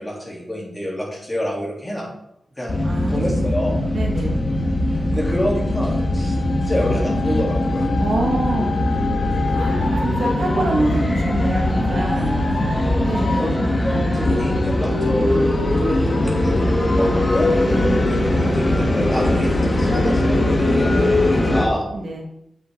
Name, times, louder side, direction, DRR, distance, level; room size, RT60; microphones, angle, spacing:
voice 1, 0.0-2.1 2.6-2.8 3.1-3.8 4.9-7.9 12.7-13.0 13.4-17.5 18.0-21.8, equal, 10° left, -4 dB, 3.2 m, -27 dB
sound 1, 2.7-21.6, left 1 dB, 40° left, 1.6 m, -20 dB
voice 2, 2.8-3.6 3.9-4.4 8.0-8.8 9.5-12.4 13.0-13.5 17.7-18.0 21.9-22.2, right 2 dB, 75° right, -1 dB, 1.9 m, -26 dB
7.8 x 6.7 x 3.8 m, 0.79 s
wide cardioid pair, 85°, 0 cm